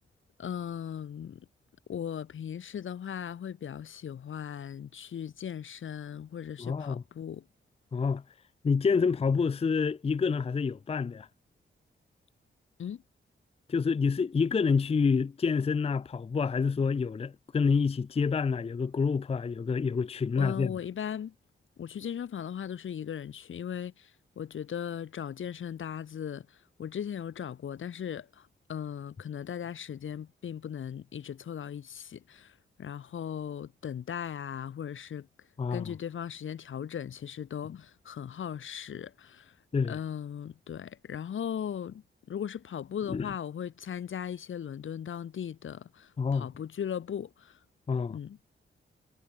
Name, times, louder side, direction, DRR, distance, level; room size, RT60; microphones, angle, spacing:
voice 1, 0.4-1.5 1.9-7.5 12.8-13.0 20.3-21.3 21.8-35.3 35.7-39.6 39.9-47.6 48.1-48.4, left 8 dB, 70° left, 1.1 m, -38 dB
voice 2, 6.6-7.0 7.9-8.2 8.6-11.3 13.7-20.7 35.6-35.9 39.7-40.0 43.1-43.3 46.2-46.5 47.9-48.2, left 5 dB, 30° left, 0.5 m, -28 dB
cardioid pair, 70°, 21 cm